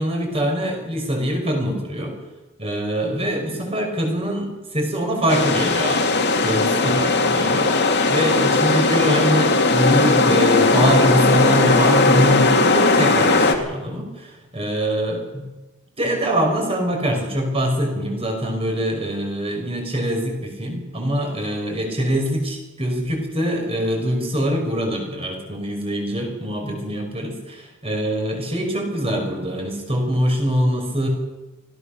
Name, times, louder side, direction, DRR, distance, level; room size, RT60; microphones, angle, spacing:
voice 1, 0.0-2.1 2.6-7.7 8.1-15.5 16.0-31.1, equal, 25° right, 2 dB, 5.6 m, -23 dB
sound 1, 5.3-13.5, left 3 dB, 50° left, 2.4 m, -18 dB
24.5 x 17.5 x 6.7 m, 1.1 s
head